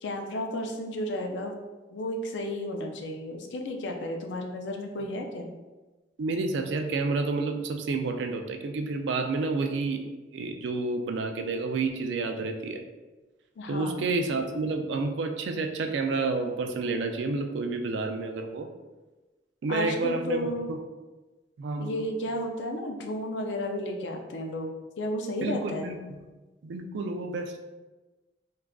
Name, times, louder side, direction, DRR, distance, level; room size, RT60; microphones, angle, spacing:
voice 1, 0.0-1.6 1.9-5.5 13.6-14.1 19.7-20.7 21.8-25.9, left 1 dB, 90° left, 3 dB, 0.4 m, -33 dB
voice 2, 6.2-12.8 13.7-18.7 19.6-20.8 21.6-22.1 25.4-26.3 26.6-27.6, right 3 dB, 80° right, 5 dB, 0.3 m, -30 dB
3.5 x 2.3 x 2.3 m, 1.2 s
head